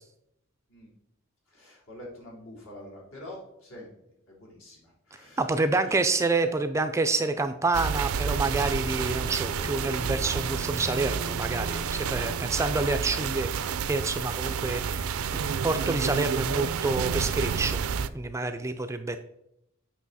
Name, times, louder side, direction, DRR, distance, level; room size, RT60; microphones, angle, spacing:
voice 1, 1.5-3.9 4.3-5.4 12.3-12.5, left 1 dB, 70° left, -4 dB, 3.6 m, -46 dB
voice 2, 5.4-15.2 15.6-17.8 18.1-19.2, right 3 dB, 15° right, 8 dB, 0.4 m, -28 dB
sound 1, 7.7-18.1, right 6 dB, 80° right, 0.4 m, -30 dB
Bowed string instrument, 8.3-13.2, left 2 dB, 90° left, 2.7 m, -44 dB
8.4 x 5.9 x 4.1 m, 0.80 s
head